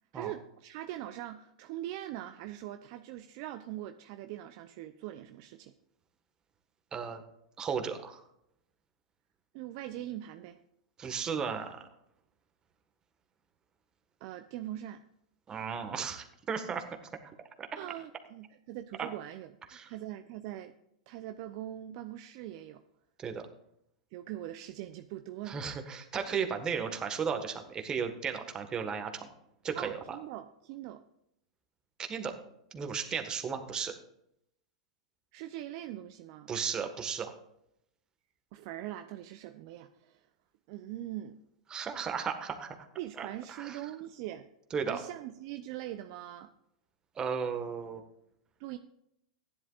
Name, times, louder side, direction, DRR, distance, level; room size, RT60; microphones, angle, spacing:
voice 1, 0.1-5.7 9.5-10.6 14.2-15.0 17.8-19.5 19.9-20.7 21.1-22.8 24.1-25.6 29.7-31.0 35.3-36.5 38.5-40.2 40.7-41.4 43.0-44.5 44.9-46.5 48.6-48.8, right 13 dB, 55° right, 8 dB, 0.6 m, -42 dB
voice 2, 6.9-7.2 7.6-8.2 11.0-11.9 15.5-16.8 17.6-17.7 19.0-19.1 19.7-19.9 23.2-23.5 25.5-29.3 29.6-30.2 32.1-32.3 32.7-33.9 36.5-37.3 41.7-42.7 43.2-43.9 44.7-45.0 47.1-48.0, right 6 dB, 25° right, 6 dB, 1.6 m, -35 dB
15.0 x 10.5 x 2.5 m, 0.77 s
hypercardioid pair, 105°, 3 cm